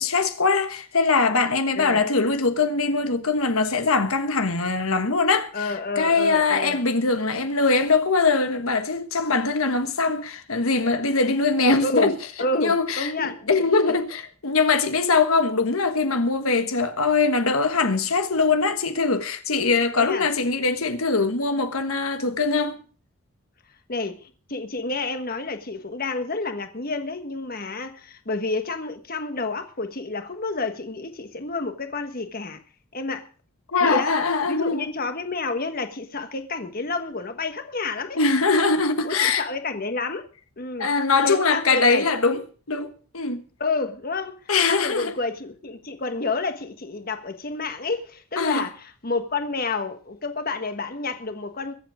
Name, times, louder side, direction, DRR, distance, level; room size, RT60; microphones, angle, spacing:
voice 1, 0.0-12.1 12.5-22.8 33.7-34.9 38.1-39.4 40.8-42.4 42.7-43.4 44.5-45.1 48.4-48.7, left 4 dB, 75° left, 1.4 m, -22 dB
voice 2, 5.5-6.8 11.8-13.5 20.0-20.3 23.9-32.6 32.9-33.3 33.8-34.2 34.5-38.2 39.0-40.3 40.6-40.9 41.2-42.1 43.6-44.4 44.7-48.7 49.0-51.7, left 3 dB, 45° left, 1.4 m, -29 dB
23.0 x 7.8 x 5.0 m
head